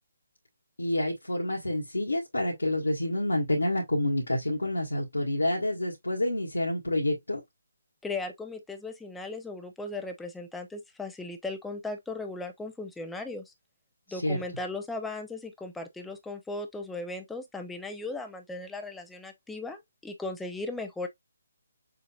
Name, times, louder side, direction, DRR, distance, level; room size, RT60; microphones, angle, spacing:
voice 1, 0.8-7.4 14.1-14.4, left 1 dB, 80° left, 1.7 m, -28 dB
voice 2, 8.0-13.5 14.1-21.1, left 2 dB, 5° left, 0.6 m, -37 dB
6.7 x 2.7 x 2.3 m
figure-of-eight pair, 145°, 0 cm